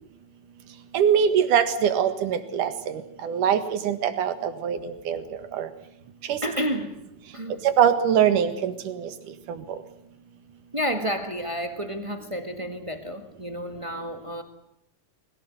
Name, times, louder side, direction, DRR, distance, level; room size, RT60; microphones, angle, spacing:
voice 1, 0.9-5.2 5.5-5.7 6.3-6.4 7.6-9.1 9.5-9.8, right 8 dB, 70° right, 10 dB, 3.2 m, -23 dB
voice 2, 6.4-7.0 7.3-7.6 10.7-14.4, equal, 40° right, 7 dB, 0.4 m, -30 dB
21.5 x 18.5 x 9.5 m, 0.77 s
omnidirectional pair, 3.9 m